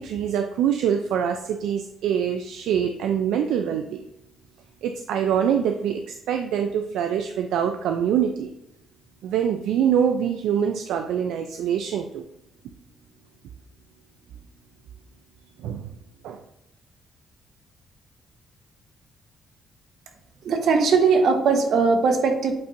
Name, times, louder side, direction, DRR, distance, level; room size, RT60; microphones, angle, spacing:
voice 1, 0.0-4.0 4.8-8.5 9.2-12.2 15.6-15.9 16.2-16.4, right 8 dB, 85° right, 6 dB, 0.4 m, -24 dB
voice 2, 20.4-22.5, right 4 dB, 70° right, 5 dB, 1.1 m, -19 dB
8.4 x 4.4 x 2.6 m, 0.85 s
cardioid pair, 90°, 0 cm